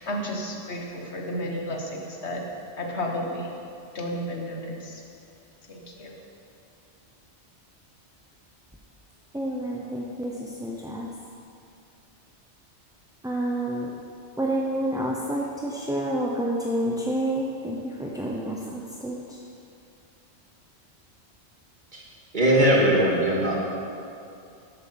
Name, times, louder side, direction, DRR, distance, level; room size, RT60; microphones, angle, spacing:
voice 1, 0.0-2.4 2.8-3.6 3.9-5.0 5.7-6.2, equal, 70° left, 0 dB, 1.6 m, -32 dB
voice 2, 9.3-11.1 13.2-13.9 14.4-19.4, right 1 dB, 5° right, -3 dB, 0.6 m, -29 dB
voice 3, 22.3-23.5, right 1 dB, 45° right, -4 dB, 2.2 m, -20 dB
11.5 x 8.1 x 5.8 m, 2.5 s
omnidirectional pair, 1.2 m